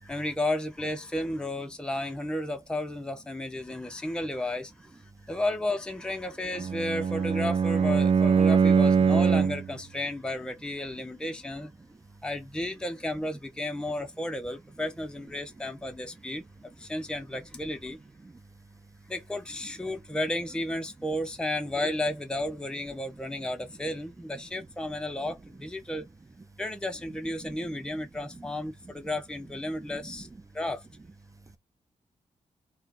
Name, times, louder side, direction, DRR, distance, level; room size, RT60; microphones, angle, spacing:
voice 1, 0.0-11.7 12.2-16.4 16.8-18.0 19.1-26.1 26.6-30.3 30.5-30.9, left 1 dB, 5° left, 0.8 m, -33 dB
Bowed string instrument, 6.5-9.7, right 6 dB, 45° right, 0.4 m, -22 dB
voice 2, 27.2-27.8 29.8-30.2, right 3 dB, 25° right, 1.0 m, -46 dB
4.2 x 2.3 x 4.0 m
cardioid pair, 65°, 13 cm